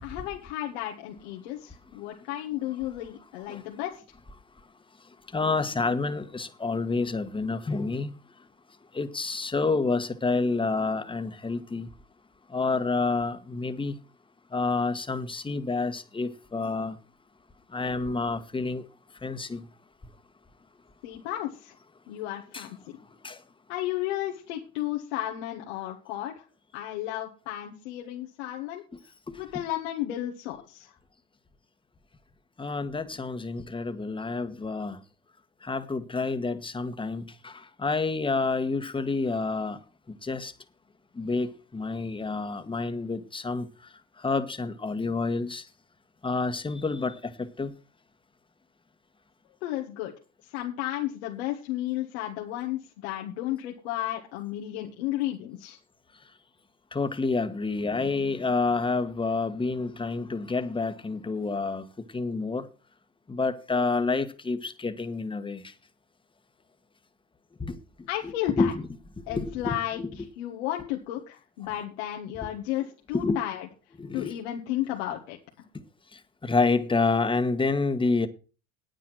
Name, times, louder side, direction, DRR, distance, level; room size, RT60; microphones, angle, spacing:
voice 1, 0.0-4.0 21.0-21.7 22.1-22.8 23.7-26.4 26.7-28.8 29.3-30.9 49.6-50.1 50.4-55.8 68.1-68.7 69.3-73.7 74.1-75.4, left 13 dB, 85° left, 1.7 m, -33 dB
voice 2, 5.3-8.1 8.9-11.9 12.5-13.9 14.5-17.0 17.7-18.8 19.2-19.6 22.5-22.7 23.2-23.4 32.6-35.0 35.6-39.8 40.1-40.5 41.2-43.7 44.2-45.6 46.2-47.7 56.9-61.8 62.1-62.6 63.3-65.6 67.6-68.1 68.6-68.8 69.3-70.1 73.1-73.4 74.0-74.3 76.4-78.3, left 3 dB, 15° left, 1.4 m, -28 dB
9.1 x 9.1 x 6.2 m
supercardioid pair, 90°, 32 cm